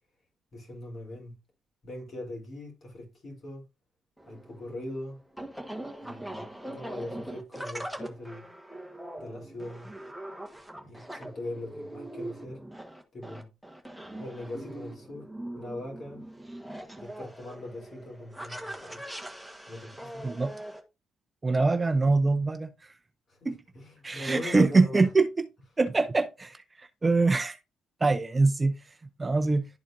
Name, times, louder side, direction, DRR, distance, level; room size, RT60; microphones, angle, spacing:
voice 1, 0.5-1.3 1.8-3.6 4.3-5.2 6.0-8.4 9.2-9.9 10.8-12.6 13.1-13.5 14.2-15.3 15.6-16.2 17.0-19.0 19.7-20.2 23.4-25.1, left 1 dB, 50° left, 3.5 m, -40 dB
sound 1, 4.2-20.8, right 1 dB, ahead, 1.3 m, -42 dB
voice 2, 21.4-22.7 23.4-23.6 24.0-25.4 25.8-26.6 27.0-27.6 28.0-28.8 29.2-29.7, right 3 dB, 25° right, 0.6 m, -23 dB
11.5 x 4.2 x 2.6 m
cardioid pair, 90°, 0 cm